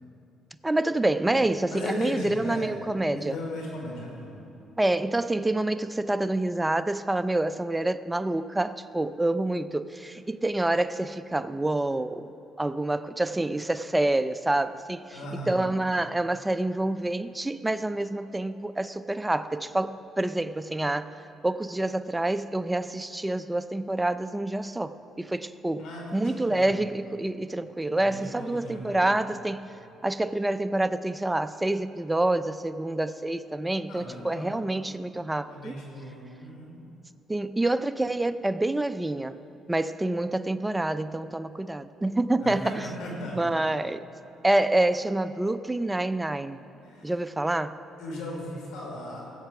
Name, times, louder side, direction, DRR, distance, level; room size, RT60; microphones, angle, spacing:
voice 1, 0.6-3.4 4.8-12.3 12.6-15.2 15.5-21.1 21.4-24.9 25.2-25.9 26.1-29.7 30.0-35.8 37.3-39.4 39.7-42.8 43.3-44.0 44.4-46.6 47.0-47.7, right 2 dB, 10° right, 12 dB, 0.4 m, -27 dB
voice 2, 1.7-2.7 3.1-4.3 15.1-15.6 25.8-26.8 27.9-29.1 33.9-34.6 35.5-36.7 42.4-43.4 46.8-47.1 48.0-49.2, left 1 dB, 80° left, -1 dB, 3.3 m, -37 dB
15.5 x 7.6 x 5.8 m, 2.9 s
cardioid pair, 95°, 0 cm